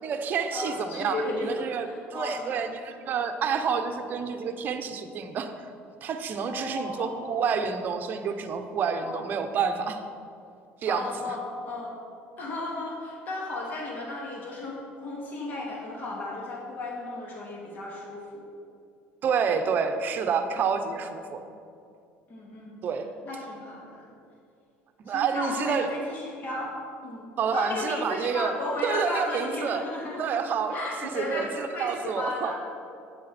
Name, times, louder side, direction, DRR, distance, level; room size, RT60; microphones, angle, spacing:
voice 1, 0.0-5.5 6.0-10.0 10.8-11.3 19.2-21.4 22.8-23.1 25.0-25.9 27.4-28.5 28.8-29.8 30.2-32.5, right 6 dB, 40° right, 7 dB, 0.8 m, -29 dB
voice 2, 0.5-2.6 6.5-7.4 9.0-9.3 10.9-11.9 12.4-18.4 22.3-22.8 23.2-24.1 25.1-26.7 27.0-27.2 27.5-30.2 30.7-32.5, left 2 dB, 40° left, -3 dB, 2.3 m, -34 dB
11.0 x 8.8 x 4.3 m, 2.4 s
cardioid pair, 135°, 5 cm